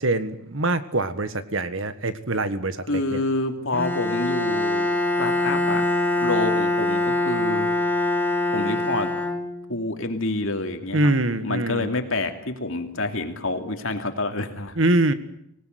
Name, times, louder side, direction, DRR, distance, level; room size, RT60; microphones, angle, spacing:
voice 1, 0.0-3.2 10.9-11.9 14.8-15.1, right 2 dB, 60° right, 12 dB, 1.6 m, -24 dB
voice 2, 2.9-4.9 5.2-5.8 6.2-7.7 8.5-9.1 9.7-11.1 11.4-14.8, left 2 dB, 65° left, 6 dB, 2.8 m, -27 dB
Bowed string instrument, 3.7-9.9, left 2 dB, 10° left, 2.2 m, -24 dB
25.5 x 18.5 x 9.4 m, 0.75 s
head